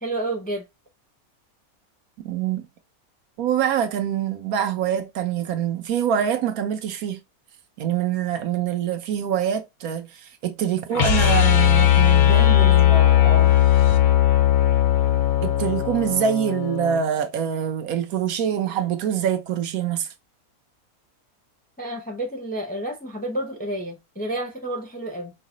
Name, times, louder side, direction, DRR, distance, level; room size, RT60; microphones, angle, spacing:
voice 1, 0.0-0.6 21.8-25.3, right 1 dB, 10° left, 0.5 m, -30 dB
voice 2, 2.2-2.6 3.4-7.2 7.8-13.5 15.4-20.1, right 9 dB, 80° right, 1.1 m, -25 dB
sound 1, 10.9-17.0, left 12 dB, 60° left, 0.5 m, -18 dB
4.7 x 2.1 x 3.7 m
omnidirectional pair, 1.5 m